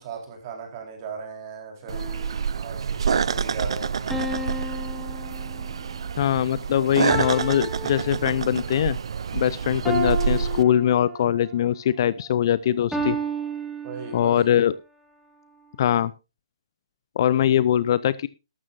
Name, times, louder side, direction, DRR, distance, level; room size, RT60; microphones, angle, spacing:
voice 1, 0.0-2.1 2.6-4.2 13.8-14.4, right 4 dB, 35° right, 2 dB, 4.1 m, -37 dB
sound 1, 1.9-2.7 4.1-5.9 7.1-8.7 9.8-11.5 12.9-14.5, right 1 dB, ahead, 2.0 m, -32 dB
sound 2, 1.9-10.6, right 6 dB, 60° right, 0.5 m, -27 dB
voice 2, 6.2-9.0 9.3-13.2 14.1-14.7 15.8-16.1 17.2-18.3, left 10 dB, 45° left, 19 dB, 0.5 m, -22 dB
13.5 x 12.5 x 2.6 m, 0.28 s
figure-of-eight pair, 140°, 3 cm